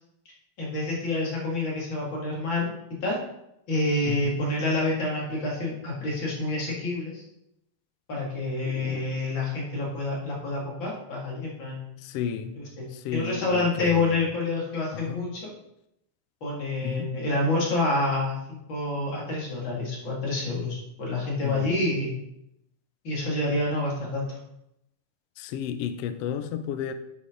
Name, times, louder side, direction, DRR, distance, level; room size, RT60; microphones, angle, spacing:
voice 1, 0.6-2.7 3.0-3.2 3.7-7.2 8.1-11.9 12.6-15.5 16.4-22.1 23.0-24.4, left 2 dB, 40° left, 2.7 m, -28 dB
voice 2, 8.6-9.2 12.0-12.6 12.9-14.2 14.9-15.2 16.8-17.2 21.4-21.8 25.4-26.9, left 9 dB, 85° left, 1.3 m, -33 dB
10.0 x 6.2 x 3.8 m
omnidirectional pair, 3.5 m